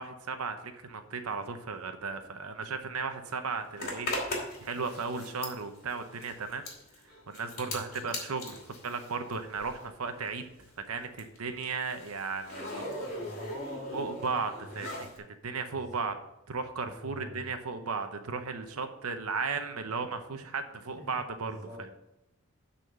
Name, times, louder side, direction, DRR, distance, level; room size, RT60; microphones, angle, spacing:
voice 1, 0.0-6.7 7.3-10.4 10.9-12.8 13.9-15.1 15.4-16.1 16.5-21.9, right 4 dB, 85° right, 7 dB, 0.9 m, -35 dB
Zipper (clothing), 3.8-9.9 10.2-15.2, left 2 dB, 45° left, 2.7 m, -40 dB
voice 2, 12.7-15.1 15.7-16.1 16.8-17.5 21.1-21.8, equal, 15° left, -5 dB, 3.1 m, -44 dB
9.4 x 4.2 x 6.6 m, 0.89 s
head